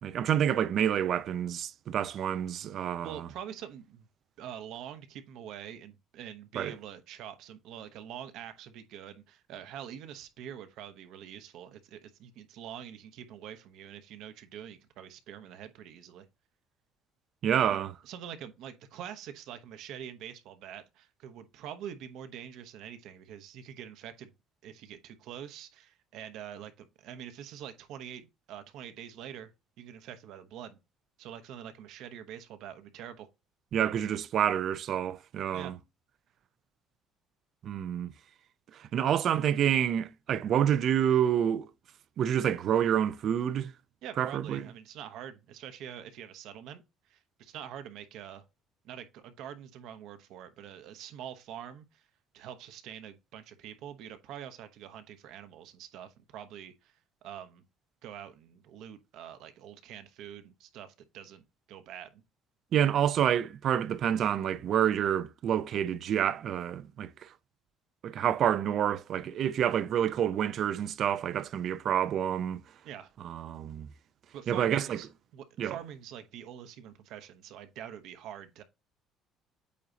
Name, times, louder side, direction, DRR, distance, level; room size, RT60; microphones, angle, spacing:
voice 1, 0.0-3.3 6.6-6.7 17.4-17.9 33.7-35.7 37.6-38.1 38.8-41.6 42.2-43.7 44.2-44.7 62.7-67.3 68.0-72.6 73.2-73.9 74.5-75.0 75.6-75.8, right 9 dB, 40° right, 0.5 m, -28 dB
voice 2, 2.8-4.1 4.4-16.3 17.7-24.3 24.6-29.5 29.8-30.8 31.2-33.3 35.5-35.8 44.0-48.4 48.8-52.1 52.3-57.6 58.0-62.2 72.8-73.1 74.3-75.1 75.3-78.6, right 9 dB, 60° right, 1.0 m, -45 dB
8.5 x 2.9 x 3.9 m
cardioid pair, 180°, 0 cm